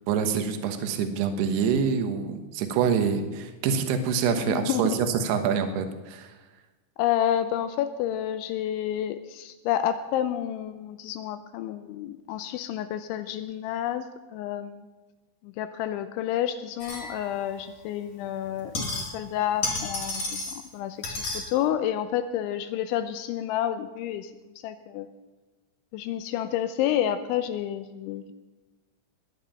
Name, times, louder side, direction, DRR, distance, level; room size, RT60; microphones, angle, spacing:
voice 1, 0.1-6.3, right 6 dB, 70° right, 7 dB, 3.0 m, -26 dB
voice 2, 4.4-5.0 7.0-14.0 14.3-14.9 15.4-24.3 24.6-25.1 25.9-28.3, left 11 dB, 85° left, 10 dB, 3.0 m, -29 dB
sound 1, 16.8-17.6 18.5-19.3 19.6-20.7 21.0-21.5, left 2 dB, 40° left, 3.2 m, -32 dB
20.5 x 10.0 x 5.6 m, 1.2 s
omnidirectional pair, 5.5 m